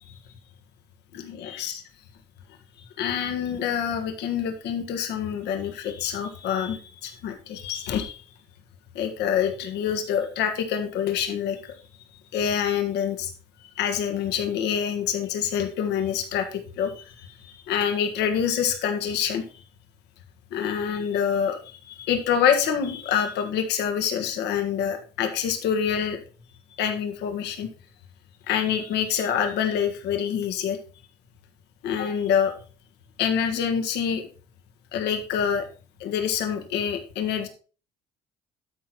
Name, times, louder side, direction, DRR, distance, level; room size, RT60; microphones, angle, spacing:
voice 1, 1.1-1.8 3.0-8.2 9.0-11.7 12.3-13.3 13.8-19.4 20.5-26.2 26.8-27.7 28.5-30.8 31.8-32.5 33.2-34.2 34.9-35.7 36.0-37.5, left 8 dB, 80° left, 5 dB, 1.7 m, -26 dB
12.5 x 4.6 x 4.3 m, 0.38 s
cardioid pair, 110°, 17 cm